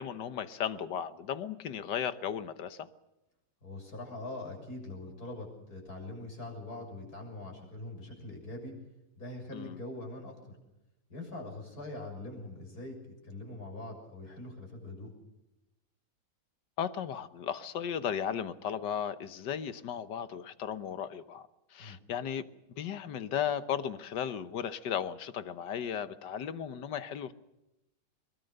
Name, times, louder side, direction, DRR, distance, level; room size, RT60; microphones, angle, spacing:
voice 1, 0.0-2.9 9.5-9.8 16.8-22.4 22.8-27.3, left 8 dB, 80° left, 1.7 m, -35 dB
voice 2, 3.6-8.7 9.2-10.4 11.1-13.0 13.2-15.1 21.8-22.0, left 2 dB, 60° left, 7.3 m, -43 dB
23.0 x 22.0 x 6.6 m
omnidirectional pair, 1.9 m